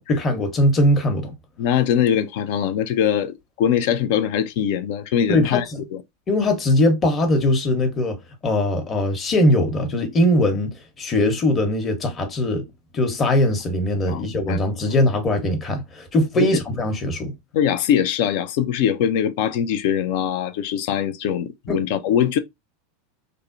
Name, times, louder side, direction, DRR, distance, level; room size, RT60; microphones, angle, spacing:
voice 1, 0.1-1.3 5.3-5.8 6.3-8.2 8.4-12.6 12.9-17.3 21.7-21.8, left 1 dB, 30° left, 0.9 m, -20 dB
voice 2, 1.6-5.6 5.9-6.0 14.1-14.6 16.4-16.5 17.5-22.4, left 9 dB, 60° left, 0.3 m, -22 dB
3.4 x 2.0 x 2.5 m
hypercardioid pair, 90°, 0 cm